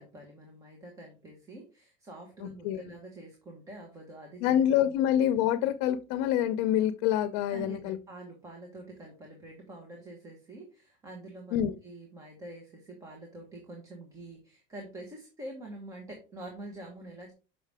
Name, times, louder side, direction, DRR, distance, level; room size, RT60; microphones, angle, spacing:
voice 1, 0.0-5.0 7.5-17.3, right 1 dB, 15° right, 1.1 m, -46 dB
voice 2, 4.4-8.0 11.5-11.7, left 11 dB, 80° left, 0.6 m, -26 dB
6.6 x 5.4 x 3.4 m
cardioid pair, 180°, 20 cm